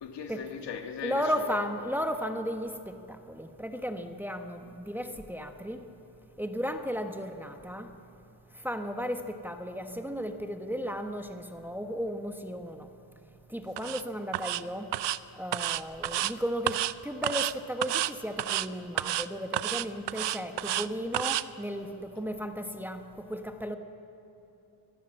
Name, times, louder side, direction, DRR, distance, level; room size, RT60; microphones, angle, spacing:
voice 1, 0.0-1.7, left 6 dB, 80° left, 4 dB, 2.3 m, -38 dB
voice 2, 1.0-3.0 3.3-5.8 6.4-7.9 8.6-12.8 13.5-14.9 15.4-23.8, equal, 5° right, 5 dB, 1.1 m, -34 dB
sound 1, 13.8-14.0 14.3-14.6 14.9-15.2 15.5-16.3 16.7-16.9 17.2-17.5 17.8-18.1 18.4-18.7 19.0-19.3 19.5-20.9 21.1-21.4, right 13 dB, 80° right, 0.7 m, -30 dB
24.5 x 20.5 x 7.6 m, 2.9 s
wide cardioid pair, 145°, 42 cm